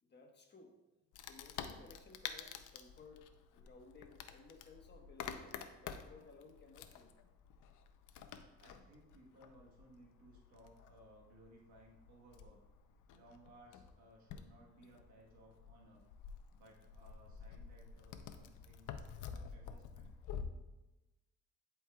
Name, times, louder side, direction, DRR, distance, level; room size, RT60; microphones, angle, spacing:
voice 1, 0.0-0.8 1.3-7.1, left 3 dB, 35° left, 3 dB, 1.2 m, -59 dB
Wood, 1.1-20.4, left 7 dB, 85° left, 0.6 m, -50 dB
voice 2, 8.5-12.6 13.1-16.0 16.5-20.1, right 1 dB, 75° right, -2 dB, 1.3 m, -62 dB
11.0 x 4.6 x 2.3 m, 1.1 s
cardioid pair, 90°, 30 cm